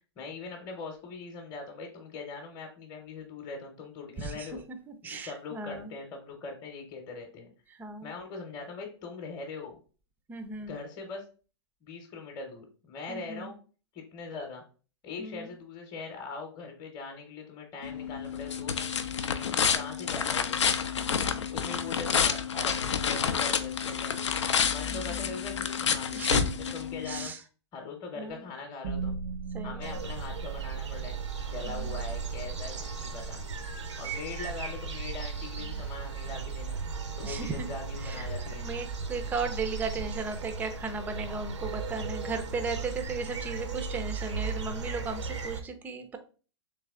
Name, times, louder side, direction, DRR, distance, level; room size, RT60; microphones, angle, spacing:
voice 1, 0.2-4.6 5.0-7.5 8.0-9.8 10.7-11.2 11.8-13.6 13.9-14.6 15.0-19.0 19.3-20.6 21.5-24.3 24.7-26.2 26.7-27.3 27.7-29.2 29.6-33.4 34.0-36.9 37.2-38.7, left 4 dB, 25° left, 2 dB, 0.8 m, -41 dB
voice 2, 4.2-4.5 4.9-5.9 7.7-8.1 10.3-10.8 13.1-13.5 15.2-15.5 21.0-21.5 24.9-25.3 26.1-26.7 27.1-27.4 28.2-28.4 29.5-30.0 31.6-31.9 33.8-34.2 35.7-35.9 37.2-37.7 38.0-38.3 38.6-46.2, right 4 dB, 10° right, 8 dB, 0.5 m, -36 dB
sound 1, 17.8-27.3, left 7 dB, 85° left, 0.5 m, -29 dB
sound 2, 28.8-40.9, right 7 dB, 60° right, 0.5 m, -39 dB
sound 3, 29.8-45.6, right 3 dB, 90° right, 0.8 m, -37 dB
3.3 x 3.1 x 3.5 m, 0.37 s
hypercardioid pair, 120°, 15 cm